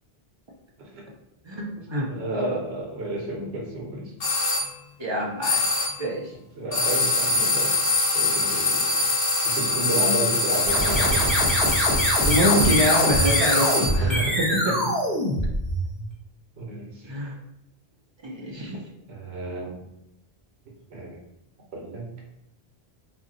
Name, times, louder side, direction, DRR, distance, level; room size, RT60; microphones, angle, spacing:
voice 1, 1.5-2.9 5.0-5.7 6.0-6.3 12.3-13.7 13.9-14.3 14.6-14.7 17.0-17.4 18.2-18.8, equal, 45° right, -1 dB, 0.4 m, -26 dB
voice 2, 2.1-4.1 6.6-7.7 8.1-9.1 9.4-11.5 13.6-14.4 14.7-14.8 16.6-17.1 19.1-19.8 20.9-21.2 21.7-22.1, right 2 dB, 85° right, -2 dB, 1.0 m, -32 dB
sound 1, 4.2-4.7 5.4-6.1 6.7-14.1, left 3 dB, 70° left, 1.0 m, -23 dB
sound 2, 10.6-16.1, equal, ahead, 0.6 m, -24 dB
2.6 x 2.1 x 3.6 m, 0.83 s
omnidirectional pair, 1.0 m